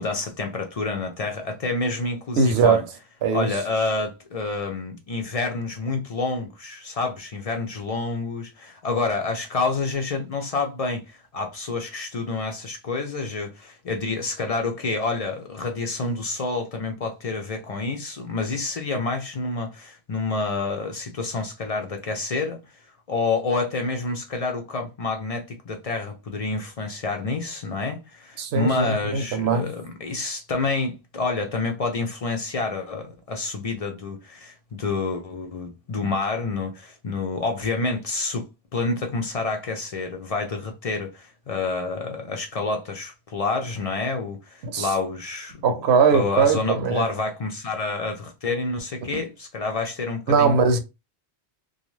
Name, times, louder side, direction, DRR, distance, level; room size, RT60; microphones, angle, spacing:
voice 1, 0.0-2.8 3.3-22.6 23.1-38.5 38.7-45.7 46.1-50.6, left 3 dB, 50° left, 0.4 m, -28 dB
voice 2, 2.4-2.8 3.2-3.5 28.4-29.7 44.6-44.9 45.6-47.0 50.3-50.8, right 5 dB, 75° right, 0.9 m, -20 dB
2.5 x 2.3 x 3.1 m
omnidirectional pair, 1.1 m